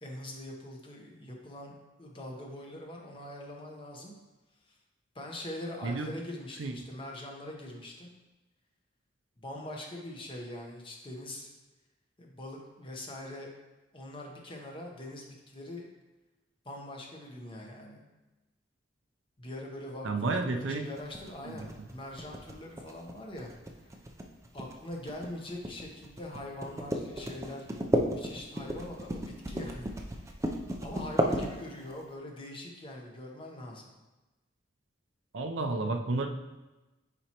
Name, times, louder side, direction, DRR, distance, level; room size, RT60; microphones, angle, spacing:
voice 1, 0.0-1.7 2.0-4.1 4.7-4.8 5.1-8.1 9.4-11.5 12.2-13.5 13.9-15.9 16.6-18.0 19.4-23.5 23.8-23.9 24.5-27.7 28.1-29.9 30.1-30.5 30.8-33.9, left 1 dB, 25° left, 0 dB, 1.0 m, -43 dB
voice 2, 20.0-20.9 21.4-21.6 35.3-36.3, right 3 dB, 80° right, 5 dB, 0.6 m, -31 dB
sound 1, 21.0-32.0, equal, 15° right, 0.5 m, -33 dB
10.0 x 4.3 x 3.0 m, 1.1 s
head